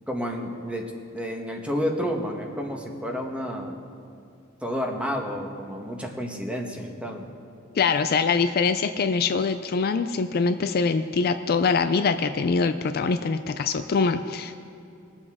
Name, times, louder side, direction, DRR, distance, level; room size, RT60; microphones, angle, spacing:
voice 1, 0.1-3.8 4.6-7.3, equal, 5° right, 1 dB, 1.1 m, -30 dB
voice 2, 7.8-14.6, left 4 dB, 50° left, 9 dB, 0.4 m, -24 dB
21.0 x 7.1 x 3.6 m, 2.6 s
head